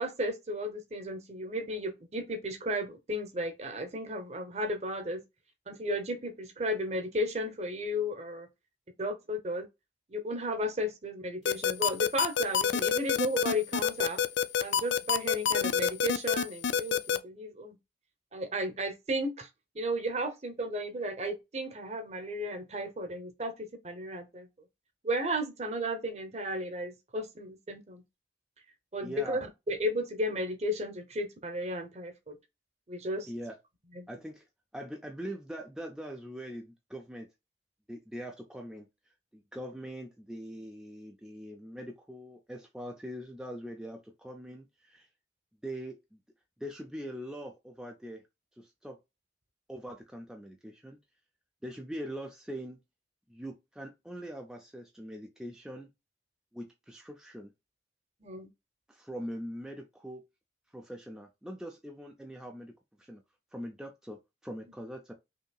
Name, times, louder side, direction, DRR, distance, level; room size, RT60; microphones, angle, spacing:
voice 1, 0.0-5.2 5.7-8.5 9.0-9.6 10.1-14.2 14.6-17.8 18.3-19.5 19.7-24.5 25.0-28.0 28.9-29.4 29.7-32.4 32.9-33.3 34.0-34.1 58.2-58.5, equal, 35° right, 0.8 m, -34 dB
sound 1, 11.5-17.2, left 7 dB, 75° left, 0.4 m, -26 dB
voice 2, 29.0-29.4 33.2-33.6 34.1-34.5 34.7-37.3 37.9-38.9 39.3-45.1 45.6-46.2 46.6-48.2 48.6-49.0 49.7-51.0 51.6-52.8 53.3-55.9 56.5-57.5 58.9-60.2 60.7-63.2 63.5-65.1, equal, 5° right, 0.4 m, -42 dB
5.4 x 2.8 x 2.3 m
head